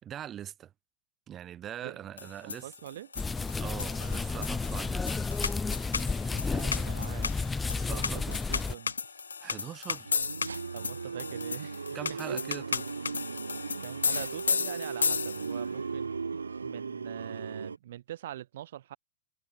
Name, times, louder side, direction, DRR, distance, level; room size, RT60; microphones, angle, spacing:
voice 1, 0.0-0.7 1.3-2.7 3.6-5.3 6.5-6.7 7.9-8.3 9.4-10.1 11.9-12.9, right 10 dB, 30° right, 4.0 m, -42 dB
voice 2, 1.8-3.1 6.3-8.9 10.7-11.8 13.8-16.2 16.6-19.0, right 12 dB, 60° right, 4.7 m, -44 dB
sound 1, 2.2-15.7, left 5 dB, 75° left, 0.8 m, -34 dB
sound 2, 3.2-8.8, left 4 dB, 10° left, 0.4 m, -32 dB
sound 3, 10.1-17.8, right 5 dB, 75° right, 0.6 m, -37 dB
figure-of-eight pair, 90°, 0 cm